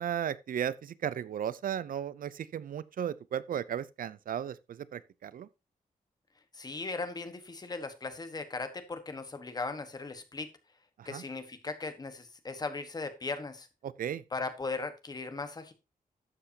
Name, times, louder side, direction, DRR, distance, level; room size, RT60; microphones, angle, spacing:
voice 1, 0.0-5.5 11.0-11.2 14.0-14.2, right 9 dB, 70° right, 0.5 m, -35 dB
voice 2, 6.5-10.5 11.0-13.7 14.3-15.7, left 3 dB, 25° left, 1.3 m, -38 dB
12.0 x 7.9 x 2.8 m
wide cardioid pair, 175°, 15 cm